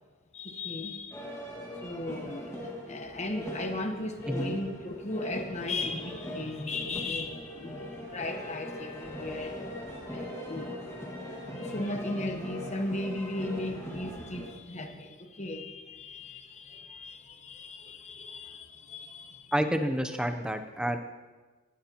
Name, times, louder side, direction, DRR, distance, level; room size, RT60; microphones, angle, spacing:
voice 1, 0.3-1.2 1.8-2.6 2.9-9.5 10.1-10.7 11.4-19.5, left 2 dB, 30° left, 5 dB, 1.0 m, -36 dB
sound 1, 1.1-14.5, left 1 dB, 15° left, 1.8 m, -40 dB
voice 2, 4.3-4.6 19.5-21.0, equal, 5° right, 7 dB, 0.6 m, -29 dB
17.5 x 12.5 x 2.9 m, 1.3 s
head